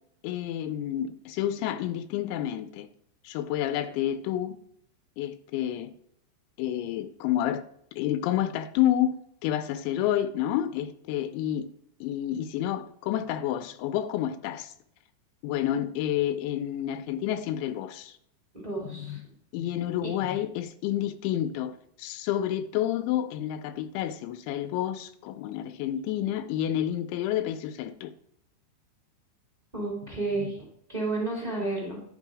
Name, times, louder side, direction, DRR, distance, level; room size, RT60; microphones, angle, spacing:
voice 1, 0.2-2.9 3.2-4.6 5.2-5.9 6.6-7.6 8.0-9.1 9.4-11.7 12.0-14.7 15.4-18.2 18.9-19.2 19.5-28.1, left 11 dB, 85° left, 2.9 m, -29 dB
voice 2, 18.5-19.2 20.0-20.1 29.7-32.0, right 2 dB, 45° right, 0.5 m, -32 dB
10.5 x 5.4 x 4.8 m
omnidirectional pair, 5.3 m